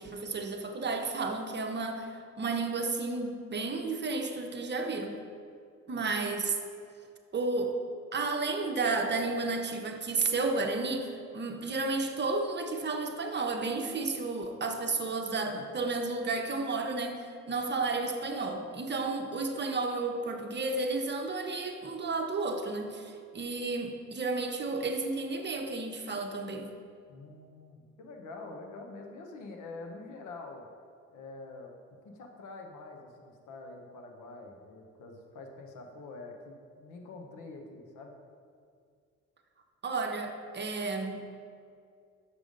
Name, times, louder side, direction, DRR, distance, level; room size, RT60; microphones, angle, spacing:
voice 1, 0.0-5.2 5.9-6.6 7.3-7.8 8.1-26.7 39.8-41.2, right 3 dB, 35° right, 4 dB, 0.8 m, -32 dB
voice 2, 27.1-30.7 31.1-31.7 32.0-38.1, left 3 dB, 80° left, 3 dB, 0.9 m, -46 dB
6.8 x 5.3 x 5.1 m, 2.3 s
cardioid pair, 90°, 30 cm